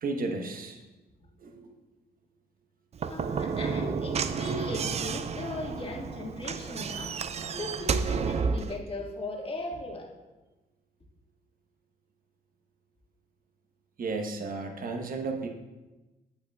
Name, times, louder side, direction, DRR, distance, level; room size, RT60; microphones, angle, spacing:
voice 1, 0.0-0.8 1.4-1.7 14.0-15.5, right 3 dB, 55° right, 4 dB, 1.0 m, -33 dB
Slam / Knock, 2.9-8.8, right 5 dB, 40° right, 0.4 m, -31 dB
voice 2, 3.0-7.1 7.5-10.1, left 1 dB, 30° left, 0 dB, 1.6 m, -37 dB
8.4 x 7.5 x 2.3 m, 1.1 s
supercardioid pair, 60°, 18 cm